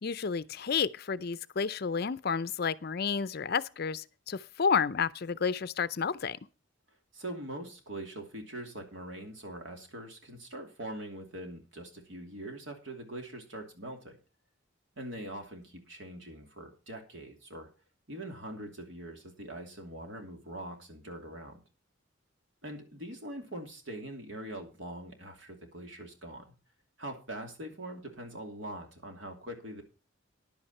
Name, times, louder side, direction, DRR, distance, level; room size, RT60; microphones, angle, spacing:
voice 1, 0.0-6.4, left 6 dB, 50° left, 0.5 m, -31 dB
voice 2, 7.1-14.2 15.0-17.7 18.1-21.6 22.6-26.4 27.0-29.8, right 1 dB, 70° right, 2.8 m, -43 dB
10.5 x 8.8 x 5.5 m
head